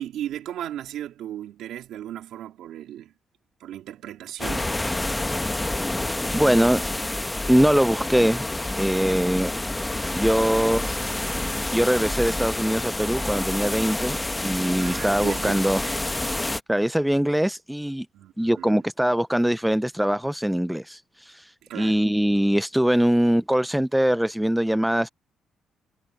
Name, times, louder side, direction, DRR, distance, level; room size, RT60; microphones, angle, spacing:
voice 1, 0.0-3.1 3.6-4.9 14.7-15.9 18.1-18.8 21.6-22.0, right 11 dB, 80° right, 2.6 m, -36 dB
sound 1, 4.4-16.6, left 2 dB, 15° left, 1.0 m, -28 dB
voice 2, 6.3-6.8 7.5-8.5 8.8-10.9 11.7-14.2 14.4-15.8 16.7-18.1 18.4-21.0 21.3-21.4 21.7-25.1, equal, 5° right, 0.3 m, -22 dB
cardioid pair, 90°, 0 cm